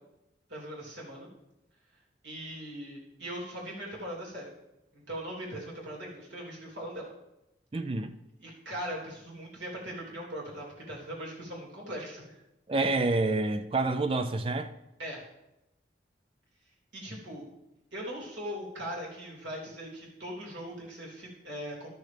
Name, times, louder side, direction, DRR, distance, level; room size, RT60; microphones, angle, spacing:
voice 1, 0.5-1.3 2.2-4.5 4.9-7.1 8.4-12.4 15.0-15.2 16.9-17.5 17.9-22.0, equal, 85° right, 3.2 m, -40 dB
voice 2, 7.7-8.1 12.7-14.7, right 2 dB, 30° right, 0.4 m, -28 dB
13.0 x 6.5 x 3.4 m
head